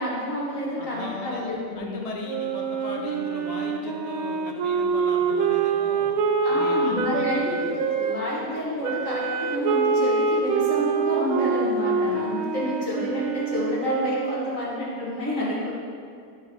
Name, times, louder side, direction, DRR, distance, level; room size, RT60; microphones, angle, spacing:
voice 1, 0.0-2.0 6.4-15.7, equal, 65° left, -7 dB, 2.3 m, -29 dB
voice 2, 0.8-6.1 6.5-7.7 12.1-12.2, left 2 dB, 35° left, 0 dB, 0.6 m, -38 dB
Wind instrument woodwind instrument, 2.3-8.2 8.8-14.7, right 5 dB, 80° right, 1.0 m, -25 dB
12.5 x 4.6 x 3.1 m, 2.2 s
omnidirectional pair, 1.5 m